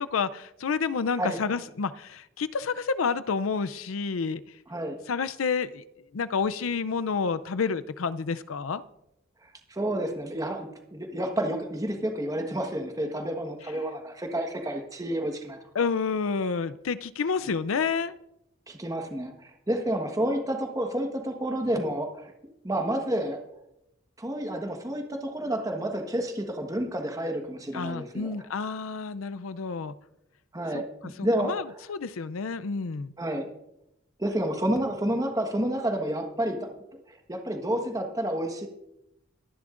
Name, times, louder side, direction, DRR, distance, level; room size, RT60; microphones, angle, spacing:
voice 1, 0.0-4.4 5.1-5.8 6.1-8.8 15.7-18.1 27.7-29.9 30.7-30.8 31.2-31.6 31.9-33.1, left 5 dB, 85° left, 14 dB, 0.5 m, -29 dB
voice 2, 9.7-15.6 18.7-22.3 22.6-23.4 24.2-28.4 30.5-31.5 33.2-33.5 34.2-36.7 37.1-38.7, right 1 dB, 15° right, 4 dB, 1.3 m, -30 dB
23.0 x 10.5 x 2.5 m, 0.85 s
head